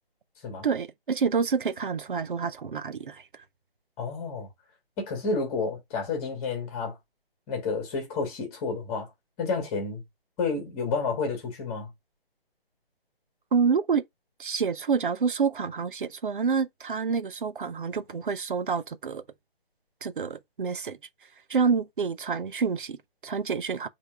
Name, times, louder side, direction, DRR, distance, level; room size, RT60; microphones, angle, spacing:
voice 1, 0.6-3.2 13.5-14.0 14.4-19.2 20.0-21.0 21.5-23.9, right 5 dB, 60° right, 0.6 m, -28 dB
voice 2, 4.0-4.5 5.0-7.0 7.5-9.1 9.4-10.0 10.4-11.9, left 4 dB, 15° left, 1.7 m, -30 dB
4.4 x 3.3 x 3.3 m
figure-of-eight pair, 145°, 30 cm